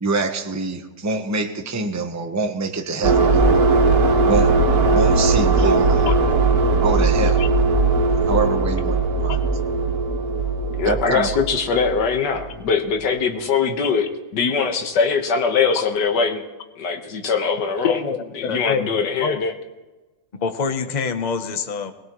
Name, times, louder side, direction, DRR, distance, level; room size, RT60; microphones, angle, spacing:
voice 1, 0.0-3.7 4.3-4.6 4.9-6.3 6.7-7.4 8.3-9.4 10.8-11.3, right 3 dB, 15° right, 4 dB, 0.6 m, -25 dB
sound 1, 3.0-12.5, right 3 dB, 55° right, 1.7 m, -19 dB
voice 2, 10.7-14.1 14.3-16.4 16.8-18.0 18.4-19.5, left 5 dB, 65° left, 5 dB, 1.9 m, -22 dB
voice 3, 17.8-19.4 20.3-21.9, left 5 dB, 35° left, 8 dB, 0.7 m, -26 dB
21.5 x 19.5 x 3.1 m, 1.1 s
omnidirectional pair, 2.0 m